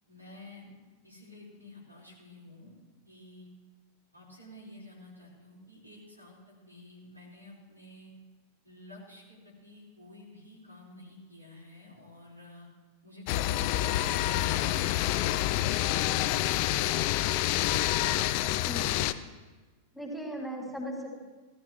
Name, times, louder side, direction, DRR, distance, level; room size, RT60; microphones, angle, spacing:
voice 1, 0.1-0.7 1.0-2.7 3.1-3.5 4.1-8.1 8.6-12.7 20.6-20.7, left 2 dB, 90° right, -6 dB, 4.4 m, -51 dB
sound 1, 13.3-19.1, left 14 dB, 45° left, 0.5 m, -27 dB
voice 2, 18.4-19.0 19.9-21.1, equal, ahead, -3 dB, 3.6 m, -38 dB
18.0 x 13.5 x 3.2 m, 1.3 s
figure-of-eight pair, 90°, 0 cm